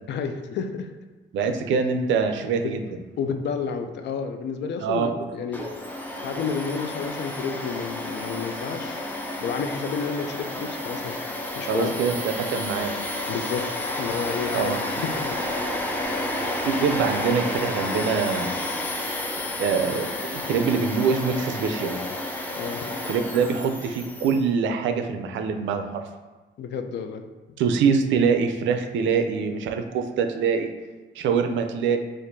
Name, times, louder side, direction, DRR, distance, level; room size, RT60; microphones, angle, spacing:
voice 1, 0.1-0.9 2.6-2.8 3.2-5.6 6.2-9.0 9.4-11.2 11.6-12.0 13.3-13.6 14.0-15.4 22.5-23.0 26.6-27.2, left 6 dB, 60° left, 7 dB, 0.4 m, -30 dB
voice 2, 1.3-2.8 4.8-5.1 11.7-12.9 14.5-14.8 16.7-18.5 19.6-22.0 23.1-26.0 27.6-30.7 31.2-32.0, right 5 dB, 75° right, 6 dB, 0.4 m, -24 dB
Domestic sounds home sounds, 5.5-24.4, left 1 dB, 10° left, 0.5 m, -31 dB
4.3 x 2.5 x 2.6 m, 1.3 s
cardioid pair, 90°, 20 cm